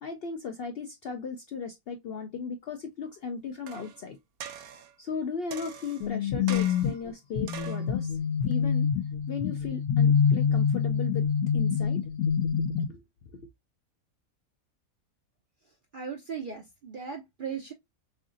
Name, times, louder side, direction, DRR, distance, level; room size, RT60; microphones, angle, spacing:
voice 1, 0.0-4.2 5.0-8.2 8.4-8.9 9.3-11.3 11.5-12.1 12.9-13.0 13.3-13.5, left 5 dB, 65° left, 0.6 m, -36 dB
sound 1, 3.7-4.0 4.4-4.9 5.5-6.1 6.5-7.0 7.5-7.9 8.5-8.6, right 8 dB, 85° right, 1.1 m, -42 dB
sound 2, 6.0-12.8, left 7 dB, 85° left, 1.2 m, -26 dB
voice 2, 15.9-17.7, right 6 dB, 55° right, 0.6 m, -37 dB
3.8 x 3.3 x 2.4 m
omnidirectional pair, 1.5 m